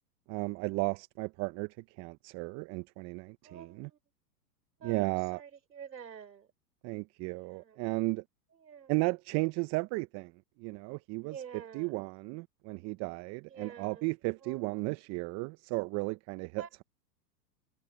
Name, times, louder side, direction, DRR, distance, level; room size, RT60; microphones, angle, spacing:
voice 1, 0.3-3.9 4.8-5.4 6.8-8.2 8.9-10.3 10.6-11.4 11.7-16.8, right 26 dB, 30° right, 0.9 m, -34 dB
voice 2, 3.4-4.0 4.8-6.5 7.3-7.8 8.6-9.1 11.2-12.0 13.5-14.1 14.4-14.6 16.6-16.7, right 7 dB, 80° right, 4.4 m, -48 dB
hypercardioid pair, 115°, 50 cm